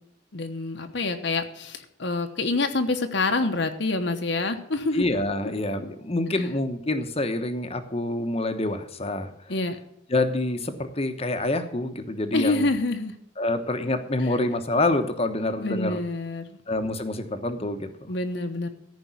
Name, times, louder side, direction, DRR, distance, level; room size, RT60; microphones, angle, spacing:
voice 1, 0.3-5.1 9.5-9.8 12.3-13.1 15.6-16.6 18.1-18.7, left 3 dB, 60° left, 6 dB, 1.1 m, -26 dB
voice 2, 4.9-9.3 10.1-12.7 13.4-16.0 16.7-18.1, left 2 dB, 30° left, 8 dB, 1.1 m, -27 dB
14.0 x 5.3 x 9.5 m, 0.73 s
head